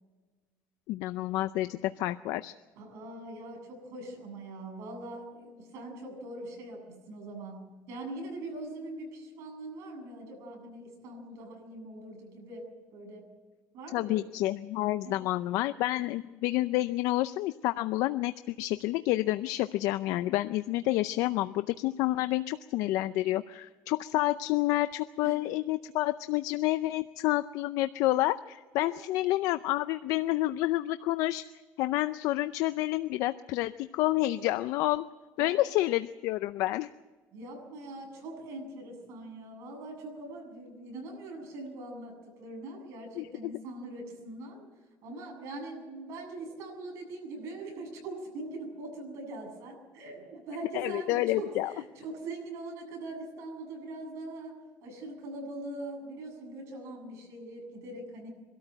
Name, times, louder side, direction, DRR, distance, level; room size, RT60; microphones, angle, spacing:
voice 1, 0.9-2.5 13.9-31.4 31.8-35.1 35.4-36.9 43.2-43.3 50.7-51.7, left 16 dB, 70° left, 12 dB, 0.5 m, -29 dB
voice 2, 2.8-13.3 13.7-14.3 15.0-15.1 25.2-25.3 28.8-29.1 35.4-35.7 37.3-58.3, right 2 dB, 60° right, 2 dB, 7.8 m, -42 dB
24.0 x 13.0 x 8.7 m, 1.3 s
cardioid pair, 170°, 6 cm